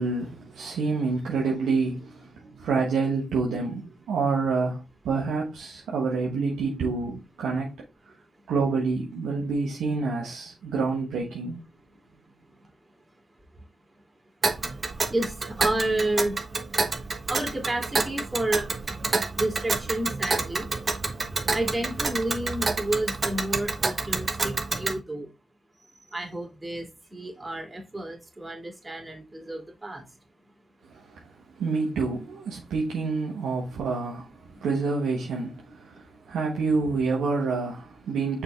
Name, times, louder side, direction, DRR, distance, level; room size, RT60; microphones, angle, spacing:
voice 1, 0.0-7.8 8.0-8.1 8.5-11.6 30.9-38.4, right 4 dB, 85° right, 1.2 m, -28 dB
Tick, 14.4-25.0, right 3 dB, 45° right, 1.2 m, -29 dB
voice 2, 15.1-16.4 17.3-18.7 19.4-20.7 21.5-25.3 26.1-30.0, right 1 dB, 25° right, 2.6 m, -30 dB
6.0 x 4.8 x 3.4 m
supercardioid pair, 45°, 0 cm